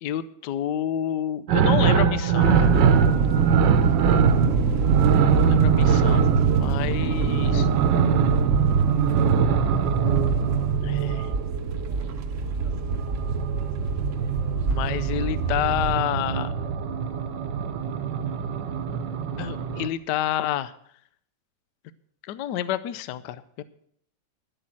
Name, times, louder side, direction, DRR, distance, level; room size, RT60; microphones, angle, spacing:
voice 1, 0.0-2.8 5.1-7.7 10.8-11.3 14.7-16.5 19.4-20.7 22.3-23.6, left 11 dB, 70° left, 15 dB, 1.2 m, -29 dB
sound 1, 1.5-11.5 13.0-19.9, right 7 dB, 75° right, 1.5 m, -23 dB
sound 2, 2.4-16.0, right 5 dB, 50° right, 1.1 m, -25 dB
11.5 x 8.5 x 7.4 m, 0.66 s
omnidirectional pair, 2.0 m